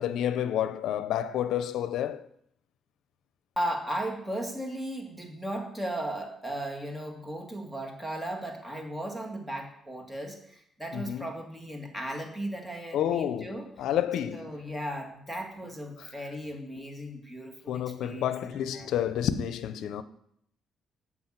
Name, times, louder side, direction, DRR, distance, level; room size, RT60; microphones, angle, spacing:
voice 1, 0.0-2.3 10.9-11.3 12.9-14.6 16.0-16.1 17.7-20.0, left 10 dB, 80° left, 0.6 m, -30 dB
voice 2, 3.6-13.7 14.3-18.3 18.7-18.9, right 1 dB, 10° right, 2.2 m, -36 dB
7.8 x 6.0 x 7.2 m
cardioid pair, 90°, 0 cm